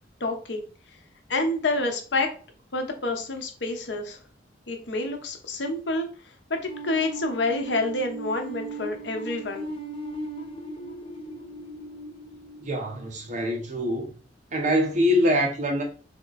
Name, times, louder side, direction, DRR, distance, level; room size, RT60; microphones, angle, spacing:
voice 1, 0.2-0.6 1.3-2.3 2.7-4.2 4.7-6.1 6.5-9.7, left 2 dB, 70° left, 0.8 m, -28 dB
sound 1, 6.7-13.5, right 2 dB, 30° left, 0.6 m, -38 dB
voice 2, 12.6-14.1 14.5-15.8, equal, 45° right, 0.9 m, -24 dB
3.5 x 2.9 x 4.0 m
head